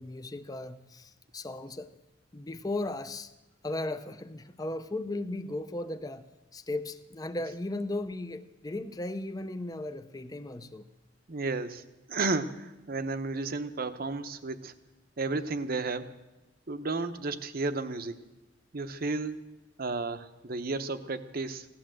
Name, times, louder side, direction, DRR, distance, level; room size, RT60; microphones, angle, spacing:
voice 1, 0.0-1.9 2.3-3.3 3.6-10.8, left 2 dB, 20° left, 10 dB, 0.6 m, -36 dB
voice 2, 11.3-14.7 15.2-16.1 16.7-18.2 18.7-19.4 19.8-21.7, right 3 dB, 50° right, 11 dB, 0.8 m, -33 dB
16.0 x 11.5 x 7.6 m, 1.0 s
head